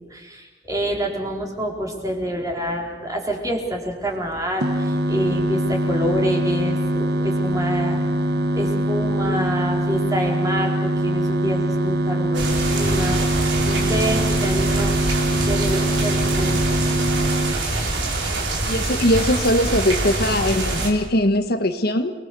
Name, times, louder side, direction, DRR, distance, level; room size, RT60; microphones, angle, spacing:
voice 1, 0.1-8.0 8.5-14.9 15.3-16.8, equal, 20° right, 0 dB, 4.3 m, -27 dB
sound 1, 4.6-17.5, right 1 dB, 60° right, 1.4 m, -23 dB
sound 2, 12.3-20.9, right 2 dB, 80° right, 5.0 m, -24 dB
voice 2, 18.7-22.1, left 1 dB, 55° left, 7 dB, 1.4 m, -20 dB
29.5 x 21.0 x 6.9 m, 1.2 s
head